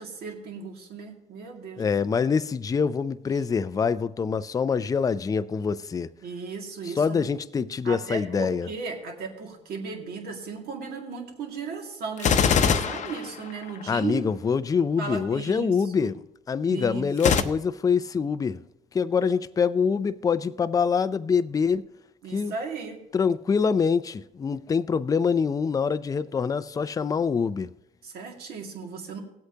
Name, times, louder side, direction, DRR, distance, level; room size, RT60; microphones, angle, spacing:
voice 1, 0.0-1.8 6.2-7.4 7.8-14.2 15.0-16.1 16.7-17.4 22.2-23.0 28.0-29.2, right 5 dB, 65° right, 2.1 m, -36 dB
voice 2, 1.8-6.1 6.9-8.7 13.9-16.2 16.5-18.6 18.9-21.8 22.3-22.5 23.1-27.7, left 6 dB, 20° left, 0.4 m, -25 dB
Gunshot gunfire, 12.2-14.0 17.2-17.4, left 6 dB, 45° left, 0.8 m, -22 dB
18.0 x 8.0 x 2.8 m
cardioid pair, 110°, 17 cm